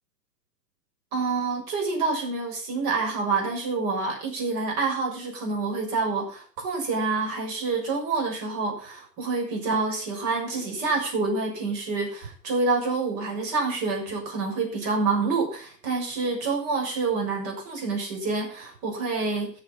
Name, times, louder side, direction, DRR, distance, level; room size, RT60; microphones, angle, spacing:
voice 1, 1.1-19.5, right 4 dB, 40° right, 0 dB, 7.0 m, -27 dB
13.5 x 7.4 x 7.3 m, 0.42 s
hypercardioid pair, 125°, 49 cm